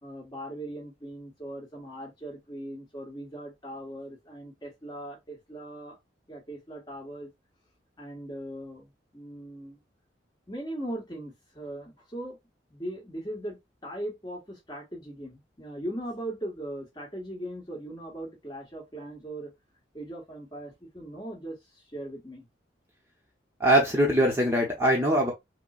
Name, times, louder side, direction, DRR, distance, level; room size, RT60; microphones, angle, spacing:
voice 1, 0.0-6.0 6.3-7.3 8.0-9.8 10.5-12.4 12.7-19.5 19.9-22.5, right 1 dB, 20° left, 1.5 m, -39 dB
voice 2, 23.6-25.3, right 1 dB, 15° right, 0.8 m, -22 dB
5.7 x 2.2 x 2.4 m
head